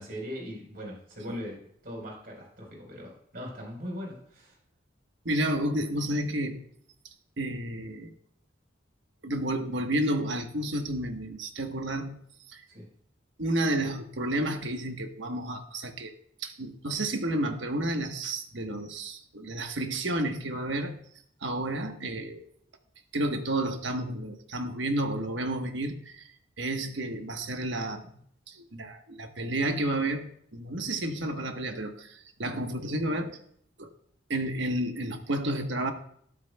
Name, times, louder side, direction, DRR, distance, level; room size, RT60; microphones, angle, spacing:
voice 1, 0.0-1.6 1.8-4.6 12.7-12.9, equal, 50° right, -1 dB, 4.2 m, -40 dB
voice 2, 5.2-6.6 7.4-8.1 9.2-12.2 12.5-12.6 13.4-16.1 16.4-21.0 21.4-22.4 23.1-26.3 26.6-28.2 28.5-33.4 33.8-33.9 34.3-35.9, right 1 dB, 70° right, 5 dB, 1.2 m, -31 dB
12.5 x 11.5 x 2.3 m, 0.64 s
head